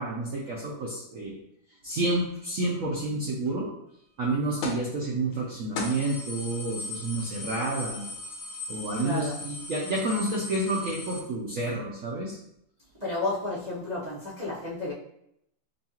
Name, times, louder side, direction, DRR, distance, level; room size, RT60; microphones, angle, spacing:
voice 1, 0.0-1.3 1.8-3.7 4.2-8.1 8.7-12.4, right 2 dB, 85° right, -3 dB, 0.7 m, -29 dB
sound 1, 4.6-4.9 5.3-5.4 5.8-11.2, left 3 dB, 85° left, 1.6 m, -37 dB
voice 2, 9.0-9.4 13.0-14.9, left 2 dB, 50° right, -10 dB, 0.4 m, -32 dB
5.3 x 2.3 x 2.8 m, 0.76 s
omnidirectional pair, 2.2 m